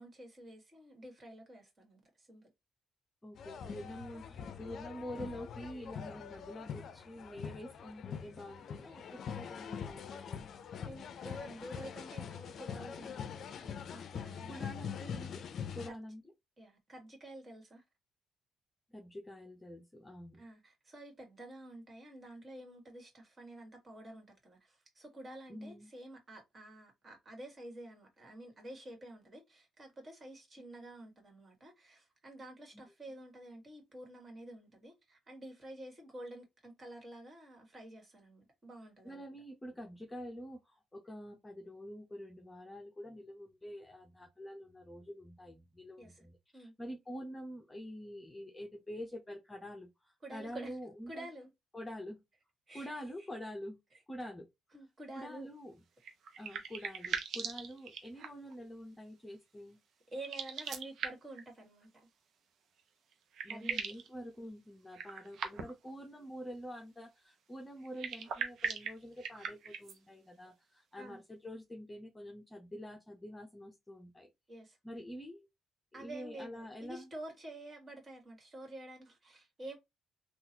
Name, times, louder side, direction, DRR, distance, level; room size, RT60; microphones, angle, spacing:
voice 1, 0.0-2.4 10.8-14.6 15.8-16.0 16.6-17.8 20.4-39.2 46.0-46.3 46.5-46.7 50.2-50.8 51.1-51.5 52.7-52.9 53.2-53.3 54.7-55.5 60.1-61.9 63.5-64.0 71.0-71.2 74.5-74.8 75.9-79.8, right 1 dB, 35° right, 1.8 m, -49 dB
voice 2, 3.2-10.5 14.5-15.4 15.7-16.2 18.9-20.4 25.5-25.9 39.0-51.3 51.7-52.2 52.7-53.8 54.1-54.5 55.1-55.8 56.4-59.8 63.4-74.3 74.8-75.5 75.9-77.1, equal, 15° left, 0.7 m, -47 dB
sound 1, 3.4-15.9, left 7 dB, 60° left, 0.5 m, -44 dB
sound 2, 56.0-58.5 60.1-61.4 62.8-62.9 63.1-64.1 64.9-65.9 67.8-70.0, right 6 dB, 65° right, 0.7 m, -40 dB
3.7 x 2.4 x 2.8 m
cardioid pair, 95°, 0 cm